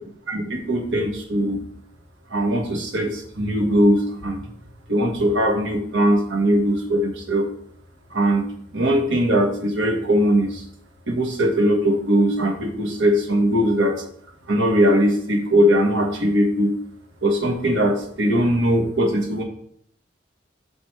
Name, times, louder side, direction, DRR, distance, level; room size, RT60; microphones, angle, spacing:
voice 1, 0.3-1.6 2.3-4.4 4.9-7.4 8.1-8.5 8.7-10.6 11.1-14.0 14.5-16.7 17.2-19.4, equal, 85° right, 1 dB, 1.7 m, -20 dB
8.0 x 6.5 x 3.4 m, 0.66 s
head